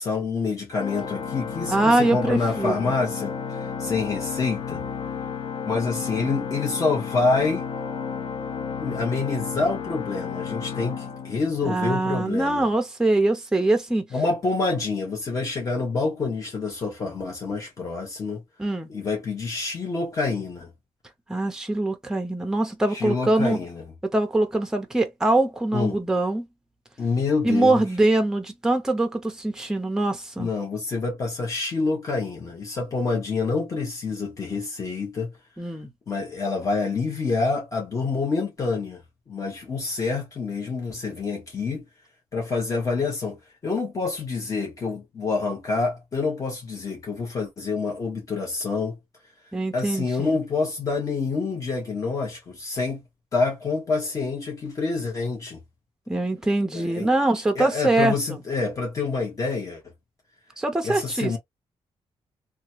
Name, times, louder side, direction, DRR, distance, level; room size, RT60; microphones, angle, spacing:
voice 1, 0.0-4.8 5.7-7.7 8.8-12.7 14.1-18.4 18.9-20.7 22.9-23.8 25.7-26.0 27.0-27.8 30.4-35.3 36.1-39.0 39.3-41.8 42.3-49.0 49.7-53.0 53.3-55.6 56.7-57.1 57.5-59.8 60.8-61.4, left 4 dB, 30° left, 1.1 m, -27 dB
Organ, 0.7-11.9, left 6 dB, 65° left, 0.8 m, -32 dB
voice 2, 1.7-2.9 11.6-14.0 18.6-18.9 21.3-23.6 24.0-26.5 27.4-30.5 35.6-35.9 49.5-50.4 56.1-58.4 60.6-61.4, right 2 dB, 5° right, 0.6 m, -23 dB
2.9 x 2.3 x 2.8 m
wide cardioid pair, 180°, 10 cm